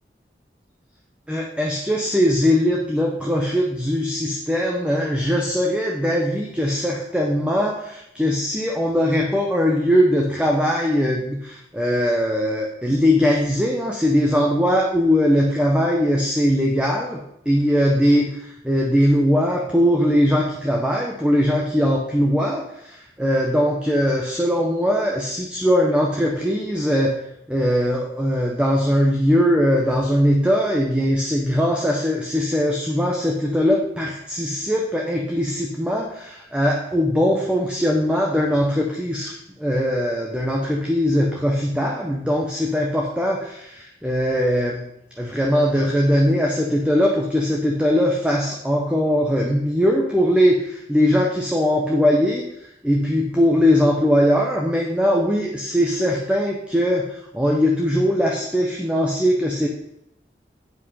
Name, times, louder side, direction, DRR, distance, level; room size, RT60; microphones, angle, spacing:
voice 1, 1.3-27.2 27.5-44.9 45.2-52.4 52.8-59.7, equal, 5° right, -1 dB, 0.8 m, -20 dB
8.5 x 5.3 x 5.5 m, 0.80 s
head